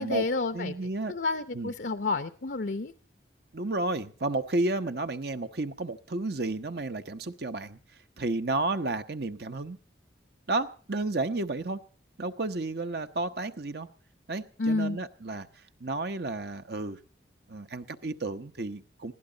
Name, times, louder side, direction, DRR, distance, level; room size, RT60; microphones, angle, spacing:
voice 1, 0.0-0.7 1.1-2.9 14.6-15.0, left 3 dB, 65° left, 10 dB, 0.7 m, -30 dB
voice 2, 0.5-1.1 1.5-1.7 3.5-7.8 8.2-9.8 10.5-11.8 12.2-13.9 14.3-15.5 15.8-17.0 17.5-19.1, right 2 dB, 60° right, 8 dB, 0.9 m, -32 dB
21.0 x 16.0 x 4.0 m, 0.42 s
head